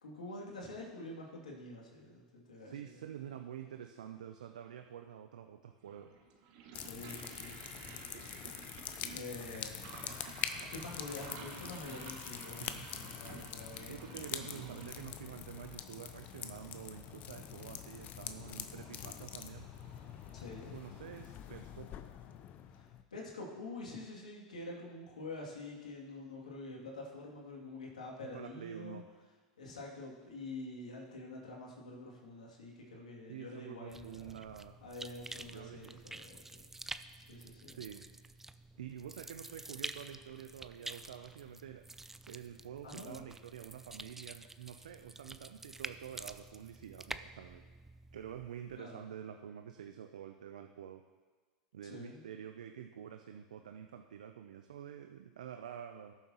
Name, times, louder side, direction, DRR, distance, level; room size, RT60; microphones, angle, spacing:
voice 1, 0.0-3.0 6.8-8.3 9.1-10.0 10.7-14.3 14.6-14.7 20.3-20.7 22.7-29.0 29.6-34.3 34.8-36.9 37.3-37.8 42.8-43.3 48.7-49.0 51.8-52.2, left 2 dB, 85° left, -3 dB, 2.6 m, -47 dB
voice 2, 2.6-6.1 12.6-13.1 13.9-19.7 20.7-21.9 28.3-29.0 33.3-34.7 35.5-35.9 37.7-38.1 38.8-41.8 42.3-47.6 48.1-51.0 51.7-56.1, right 9 dB, 80° right, 6 dB, 0.6 m, -48 dB
sound 1, 5.8-21.2, right 5 dB, 65° right, 1.6 m, -54 dB
sound 2, 6.7-23.0, left 9 dB, 45° left, 0.7 m, -45 dB
sound 3, 33.9-48.8, right 2 dB, 10° right, 0.4 m, -48 dB
18.0 x 7.2 x 3.0 m, 1.4 s
hypercardioid pair, 95°, 4 cm